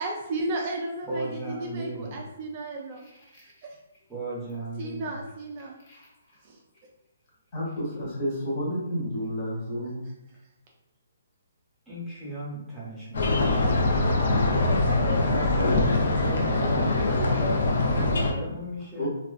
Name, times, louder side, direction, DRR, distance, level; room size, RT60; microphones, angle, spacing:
voice 1, 0.0-3.1 3.4-3.5 4.8-5.8 6.4-6.6, right 2 dB, 35° right, -1 dB, 0.4 m, -34 dB
voice 2, 1.0-2.2 4.1-5.1 11.9-14.0 15.0-19.1, right 1 dB, 10° right, -7 dB, 0.8 m, -36 dB
voice 3, 7.5-10.0 19.0-19.1, equal, 35° left, -4 dB, 1.0 m, -30 dB
sound 1, 13.1-18.3, left 2 dB, 70° left, 0.4 m, -23 dB
2.4 x 2.2 x 2.4 m, 0.92 s
hypercardioid pair, 155°, 0 cm